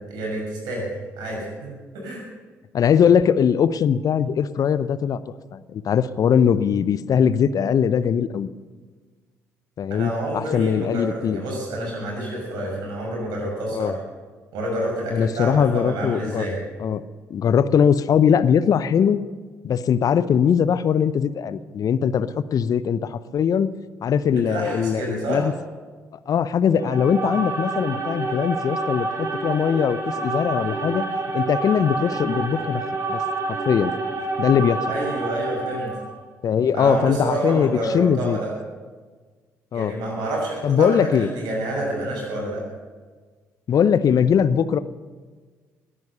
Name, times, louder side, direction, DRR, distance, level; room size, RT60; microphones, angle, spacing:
voice 1, 0.1-0.9 1.2-2.2 9.9-14.0 14.5-16.6 24.3-25.5 34.9-35.9 36.7-38.5 39.7-42.6, right 1 dB, 65° right, -2 dB, 6.6 m, -28 dB
voice 2, 2.7-5.2 5.5-8.5 9.8-11.4 13.7-13.9 15.1-16.5 16.8-17.0 17.3-19.2 19.6-23.7 24.0-25.5 26.3-31.0 31.3-32.8 33.1-33.2 33.5-33.9 34.4-34.9 36.4-38.4 39.7-40.0 40.6-41.3 43.7-44.8, left 7 dB, 50° left, 15 dB, 0.7 m, -20 dB
sound 1, 26.7-36.2, right 3 dB, 40° right, 3.9 m, -28 dB
20.5 x 9.6 x 6.8 m, 1.4 s
hypercardioid pair, 45°, 8 cm